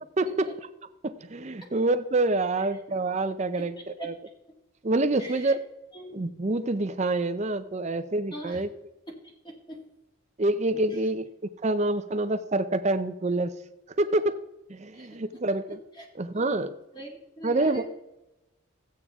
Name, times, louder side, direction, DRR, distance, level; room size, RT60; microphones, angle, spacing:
voice 1, 1.0-3.7 4.0-4.1 4.8-5.6 6.1-8.7 10.4-11.3 11.6-13.5 14.0-14.4 14.7-15.8 16.2-16.7 17.4-17.8, right 2 dB, 35° right, 10 dB, 0.6 m, -26 dB
voice 2, 3.6-4.1 5.2-5.5 5.9-6.1 8.3-8.6 9.2-9.8 10.9-11.1 14.9-15.1 15.9-16.1 16.3-16.5 16.9-17.8, right 1 dB, 20° left, -1 dB, 1.9 m, -42 dB
14.0 x 8.6 x 3.6 m, 0.94 s
head